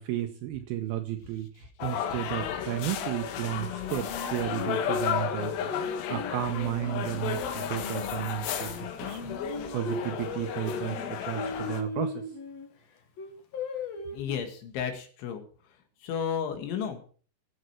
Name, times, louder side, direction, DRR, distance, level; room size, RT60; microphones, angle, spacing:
voice 1, 0.0-12.2, right 13 dB, 80° right, 6 dB, 2.3 m, -33 dB
sound 1, 1.8-11.8, left 8 dB, 75° left, 3.2 m, -33 dB
Singing, 3.6-8.3 8.7-12.7 13.2-14.3, left 4 dB, 55° left, 2.0 m, -37 dB
voice 2, 14.1-15.4 16.0-17.0, left 8 dB, 90° left, 6 dB, 4.2 m, -32 dB
17.5 x 7.7 x 4.6 m, 0.43 s
omnidirectional pair, 5.2 m